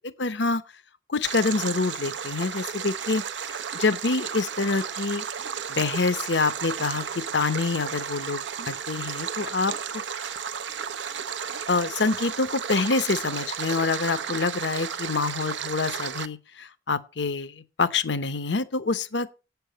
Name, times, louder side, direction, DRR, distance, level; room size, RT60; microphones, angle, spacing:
voice 1, 0.2-0.6 1.1-3.2 3.7-5.2 5.7-8.4 8.7-9.7 11.7-19.3, left 4 dB, 65° left, 0.8 m, -26 dB
Stream, 1.2-16.3, right 7 dB, 75° right, 0.7 m, -33 dB
8.5 x 6.9 x 6.7 m
head